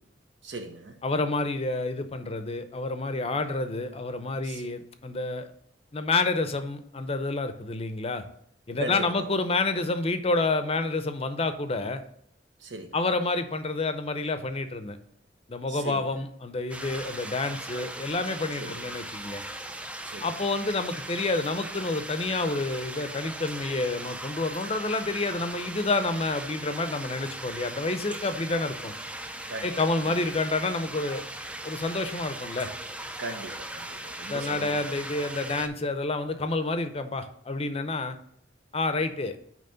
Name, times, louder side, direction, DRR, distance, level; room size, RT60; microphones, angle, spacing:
voice 1, 0.4-1.0 4.4-4.6 8.8-9.3 12.6-13.0 15.7-16.1 18.6-18.9 20.0-20.3 29.5-30.2 33.2-35.0, right 2 dB, 65° right, 0.9 m, -38 dB
voice 2, 1.0-5.5 5.9-8.2 8.7-12.0 12.9-15.0 15.5-19.4 20.2-28.9 29.6-31.2 31.6-32.7 34.3-38.2 38.7-39.4, left 3 dB, 30° left, 0.6 m, -29 dB
sound 1, 16.7-35.7, right 1 dB, 5° right, 0.4 m, -39 dB
9.1 x 3.1 x 5.6 m
head